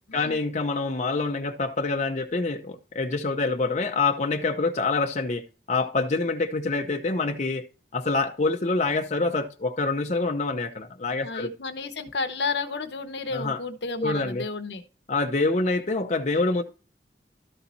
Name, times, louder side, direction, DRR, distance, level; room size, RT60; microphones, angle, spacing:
voice 1, 0.1-7.7 7.9-11.5 13.3-13.6 14.0-14.4 15.1-16.6, left 3 dB, 40° left, 0.7 m, -26 dB
voice 2, 11.2-14.8, left 4 dB, 75° left, 1.0 m, -32 dB
13.0 x 4.3 x 4.1 m
head